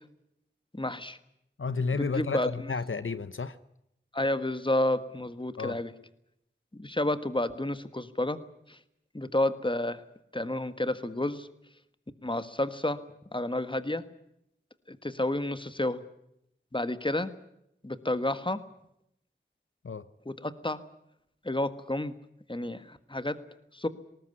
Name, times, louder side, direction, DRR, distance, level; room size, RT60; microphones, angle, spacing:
voice 1, 0.7-1.2 2.0-2.5 4.1-5.9 6.7-8.4 8.7-8.8 9.1-10.0 10.3-11.5 12.2-13.0 13.3-14.0 14.9-16.0 16.7-17.3 17.8-18.6 20.3-20.8 21.4-22.1 22.5-23.4 23.7-23.9, left 1 dB, 25° left, 1.5 m, -30 dB
voice 2, 1.6-3.6 5.6-5.8 19.8-20.1, left 4 dB, 85° left, 0.8 m, -32 dB
20.0 x 18.5 x 9.6 m
wide cardioid pair, 40°, 20 cm